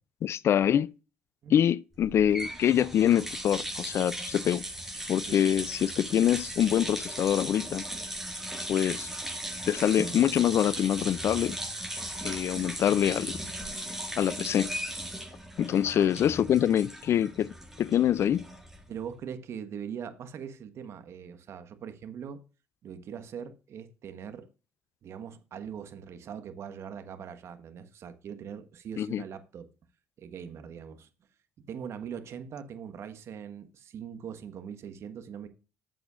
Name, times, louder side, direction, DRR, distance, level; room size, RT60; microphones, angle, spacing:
voice 1, 0.2-0.9 1.5-4.6 5.1-7.8 8.7-9.1 9.7-11.6 12.2-13.4 14.2-14.7 15.6-17.5 17.8-18.4 29.0-29.2, left 10 dB, 55° left, 0.4 m, -25 dB
sound 1, 2.0-19.0, right 1 dB, 5° right, 4.6 m, -37 dB
voice 2, 18.9-22.4 22.8-24.5 25.0-29.7 30.2-31.1 31.7-35.5, right 8 dB, 55° right, 1.4 m, -41 dB
12.5 x 7.8 x 2.5 m
hypercardioid pair, 60°, 5 cm